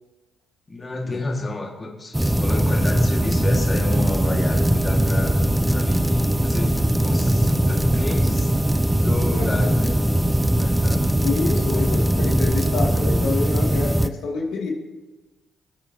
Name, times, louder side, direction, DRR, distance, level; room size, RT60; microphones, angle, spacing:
voice 1, 0.7-5.4 5.7-8.5 8.9-10.0 10.4-11.2 11.7-12.1, left 2 dB, 30° left, 0 dB, 2.0 m, -31 dB
sound 1, 2.1-14.1, right 1 dB, 10° right, 0.5 m, -20 dB
voice 2, 9.3-9.7 11.2-14.7, left 4 dB, 85° left, -2 dB, 2.4 m, -27 dB
22.0 x 8.5 x 2.9 m, 1.2 s
cardioid pair, 90°, 0 cm